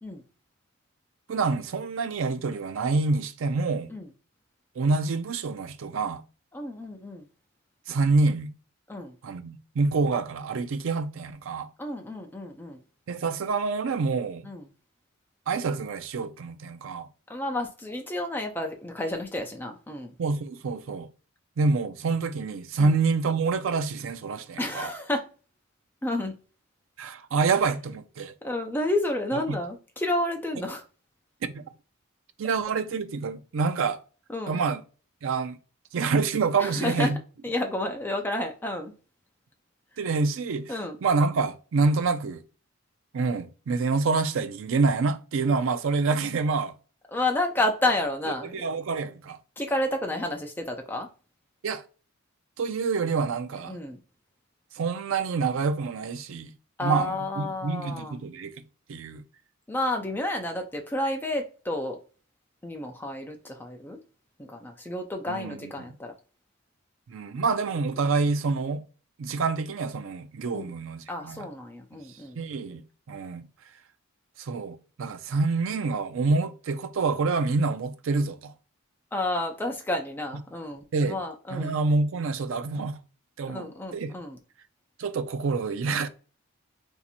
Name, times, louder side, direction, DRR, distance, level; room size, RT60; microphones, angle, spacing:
voice 1, 1.3-3.9 4.8-6.2 7.9-8.5 9.2-11.7 13.1-14.5 15.5-17.1 20.2-21.1 21.6-24.9 27.0-28.3 29.5-29.6 31.4-31.6 32.4-34.0 34.5-34.8 35.2-35.6 35.9-37.2 40.0-40.7 41.0-42.4 43.1-46.7 48.4-49.4 51.6-51.8 52.6-53.8 54.7-56.5 56.8-58.5 58.9-59.2 65.3-65.7 67.1-68.8 69.2-71.4 72.4-73.4 74.4-78.5 80.9-81.2 81.5-83.0 83.4-84.1 85.0-86.1, right 4 dB, 65° right, 0.4 m, -27 dB
voice 2, 6.5-7.2 8.9-9.1 11.8-12.8 14.4-14.7 17.3-20.1 22.8-22.9 24.6-25.2 26.0-26.3 28.4-30.8 34.3-34.6 36.6-37.1 37.4-38.9 40.7-41.0 47.1-48.6 49.6-51.1 53.7-54.0 56.8-58.2 59.7-62.0 62.6-64.0 64.4-66.1 70.5-70.7 71.1-72.4 79.1-81.8 83.5-84.4, left 1 dB, 10° left, 0.4 m, -30 dB
2.7 x 2.5 x 4.1 m
head